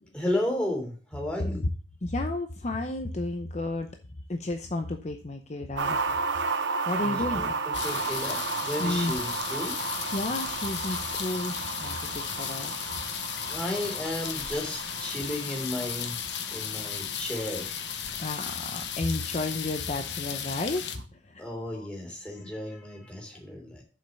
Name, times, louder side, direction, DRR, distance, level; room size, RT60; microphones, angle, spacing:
voice 1, 0.1-1.6 7.0-7.5 7.8-9.7 13.5-16.2 16.5-18.2 21.4-23.8, left 1 dB, 5° left, -1 dB, 3.2 m, -33 dB
voice 2, 1.4-1.7 2.0-3.9 4.3-6.0 6.9-7.5 8.8-9.2 10.1-12.7 13.8-13.9 17.4-17.5 18.2-21.9, left 2 dB, 40° left, 5 dB, 0.7 m, -32 dB
sound 1, 5.8-20.2 20.5-20.6, right 4 dB, 90° right, 0.9 m, -34 dB
sound 2, 7.7-21.0, left 8 dB, 75° left, 1.1 m, -35 dB
7.3 x 5.4 x 6.8 m, 0.39 s
head